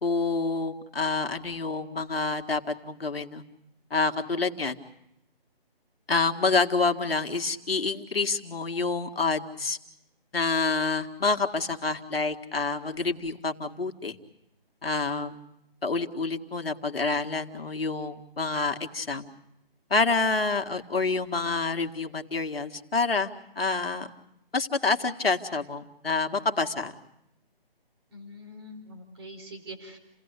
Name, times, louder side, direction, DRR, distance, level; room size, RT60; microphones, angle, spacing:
voice 1, 0.0-3.4 3.9-4.8 6.1-9.8 10.3-14.2 14.8-15.4 15.8-19.3 19.9-24.1 24.5-26.9, left 3 dB, 75° left, 5 dB, 2.0 m, -27 dB
voice 2, 28.1-30.0, equal, 25° right, 4 dB, 4.2 m, -44 dB
29.5 x 17.5 x 8.2 m, 0.84 s
figure-of-eight pair, 175°, 30 cm